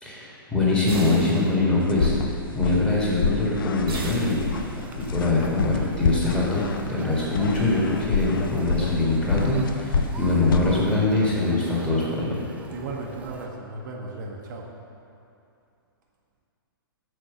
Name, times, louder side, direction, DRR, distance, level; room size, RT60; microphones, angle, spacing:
voice 1, 0.0-2.1 2.5-4.4 5.1-12.4, left 2 dB, 10° left, -6 dB, 1.7 m, -23 dB
sound 1, 0.9-1.9 3.9-4.9, right 4 dB, 75° right, 1.4 m, -35 dB
sound 2, 1.8-10.9, left 5 dB, 65° left, 0.5 m, -29 dB
Conversation, 4.4-13.5, right 3 dB, 10° right, 0.5 m, -42 dB
voice 2, 12.7-14.7, right 3 dB, 55° right, -1 dB, 0.9 m, -35 dB
6.5 x 4.5 x 6.2 m, 2.6 s
hypercardioid pair, 120°, 12 cm